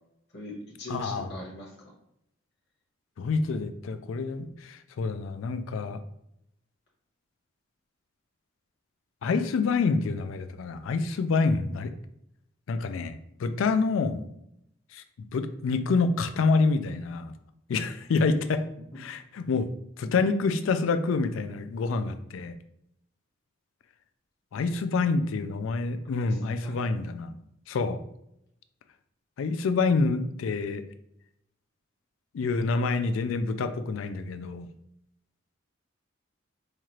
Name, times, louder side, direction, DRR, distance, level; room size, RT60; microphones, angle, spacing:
voice 1, 0.3-1.9 26.1-26.8, left 1 dB, 55° left, -4 dB, 1.0 m, -41 dB
voice 2, 0.9-1.3 3.2-6.0 9.2-11.9 12.7-14.2 14.9-15.0 15.3-17.3 17.7-18.6 19.0-19.7 20.0-22.5 24.5-27.3 27.7-28.0 29.4-30.8 32.3-34.7, left 4 dB, 85° left, 10 dB, 0.3 m, -27 dB
4.3 x 2.4 x 3.0 m, 0.78 s
head